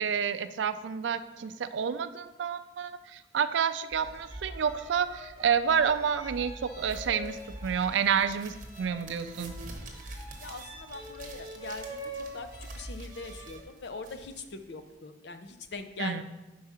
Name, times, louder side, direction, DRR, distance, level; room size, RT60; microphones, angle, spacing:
voice 1, 0.0-9.5 16.0-16.2, right 7 dB, 80° right, 12 dB, 0.4 m, -29 dB
sound 1, 3.9-13.6, equal, 15° right, 1.0 m, -44 dB
sound 2, 6.8-14.9, right 3 dB, 45° right, 0.9 m, -50 dB
voice 2, 10.4-16.2, left 3 dB, 70° left, 8 dB, 0.6 m, -42 dB
4.8 x 4.7 x 5.5 m, 1.1 s
head